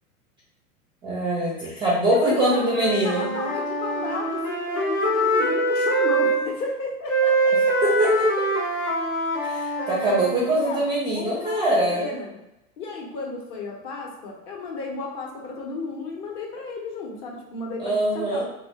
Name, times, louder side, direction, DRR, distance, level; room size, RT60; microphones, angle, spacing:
voice 1, 1.0-3.3 7.8-8.3 9.4-12.0 17.8-18.4, right 1 dB, 10° right, -5 dB, 0.4 m, -23 dB
voice 2, 1.6-2.7 3.0-7.8 10.6-10.9 11.1-12.4 12.8-18.4, left 3 dB, 40° left, -1 dB, 0.8 m, -33 dB
Wind instrument woodwind instrument, 2.5-6.4 7.1-10.6, right 2 dB, 85° left, 1.0 m, -24 dB
2.8 x 2.0 x 2.8 m, 0.89 s
figure-of-eight pair, 90°, 43 cm